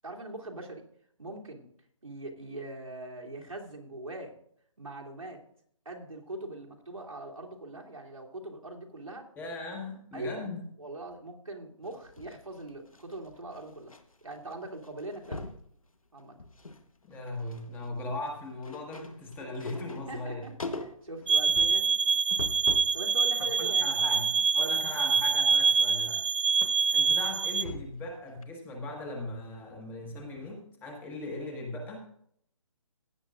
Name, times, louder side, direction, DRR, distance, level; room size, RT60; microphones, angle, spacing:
voice 1, 0.0-0.8 1.2-1.7 2.0-4.3 4.8-5.4 5.8-9.3 10.1-10.5 10.8-13.9 14.2-15.5 16.1-16.4 20.1-21.9 22.9-24.2 24.6-24.8, right 2 dB, 85° right, -2 dB, 2.8 m, -41 dB
voice 2, 9.4-10.6 17.0-20.5 23.6-26.2 26.9-32.0, left 2 dB, 10° left, 1 dB, 1.6 m, -39 dB
sound 1, 11.9-14.0 14.3-14.5 14.8-15.6 16.2-16.8 17.1-23.0 23.4-28.1 28.4-28.5, left 2 dB, 80° left, 1.2 m, -43 dB
sound 2, 21.3-27.6, right 5 dB, 65° right, 0.4 m, -25 dB
16.5 x 9.4 x 2.5 m, 0.65 s
figure-of-eight pair, 145°, 17 cm